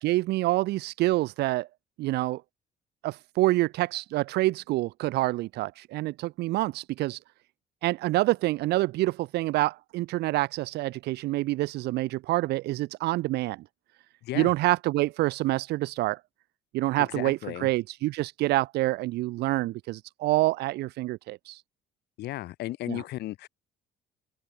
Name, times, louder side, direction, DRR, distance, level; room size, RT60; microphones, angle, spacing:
voice 1, 0.0-1.7 2.0-2.4 3.0-7.2 7.8-13.6 14.3-16.2 16.7-21.6 22.9-23.0, right 18 dB, 75° right, 0.6 m, -27 dB
voice 2, 17.0-17.7 22.2-23.5, left 16 dB, 75° left, 2.0 m, -35 dB
open air
cardioid pair, 110°, 17 cm